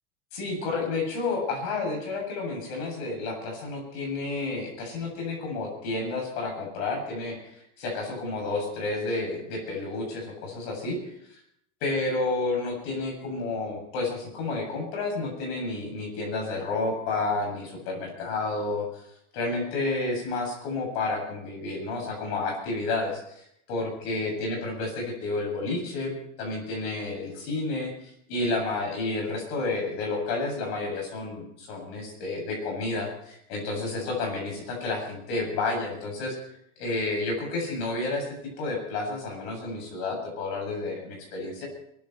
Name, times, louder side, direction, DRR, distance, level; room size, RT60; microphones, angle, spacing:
voice 1, 0.3-11.2 11.8-19.0 19.3-36.4 36.8-38.2 38.6-41.7, left 3 dB, 50° left, 1 dB, 8.0 m, -30 dB
22.5 x 14.0 x 4.5 m, 0.72 s
supercardioid pair, 175°, 38 cm